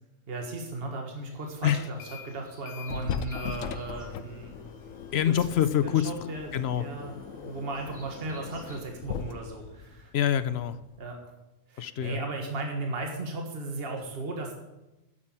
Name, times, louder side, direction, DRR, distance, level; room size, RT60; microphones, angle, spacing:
voice 1, 0.3-4.6 5.3-5.4 6.0-6.5 6.8-7.2 7.4-10.1 11.0-11.2 11.7-14.6, right 2 dB, 50° right, 2 dB, 1.8 m, -36 dB
sound 1, 1.2-8.8, equal, 5° right, 3.6 m, -53 dB
sound 2, 1.8-2.3 2.7-11.1, left 7 dB, 85° left, 1.1 m, -40 dB
voice 2, 5.1-6.9 10.1-10.8 11.8-12.2, left 10 dB, 60° left, 13 dB, 0.8 m, -26 dB
9.9 x 7.6 x 8.8 m, 0.99 s
omnidirectional pair, 1.3 m